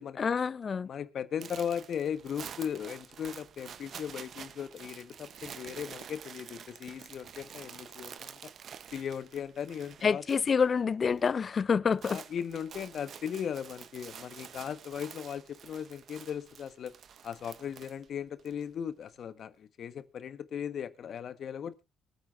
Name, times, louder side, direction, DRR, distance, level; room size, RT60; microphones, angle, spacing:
voice 1, 0.2-0.9 10.0-12.2, left 6 dB, 45° left, 0.6 m, -27 dB
voice 2, 0.8-8.5 8.9-10.2 12.1-16.9 17.2-21.8, left 8 dB, 60° left, 1.4 m, -37 dB
sound 1, 1.4-10.7 10.9-11.3 11.6-18.6, right 8 dB, 60° right, 1.0 m, -48 dB
23.5 x 9.0 x 2.6 m
cardioid pair, 90°, 0 cm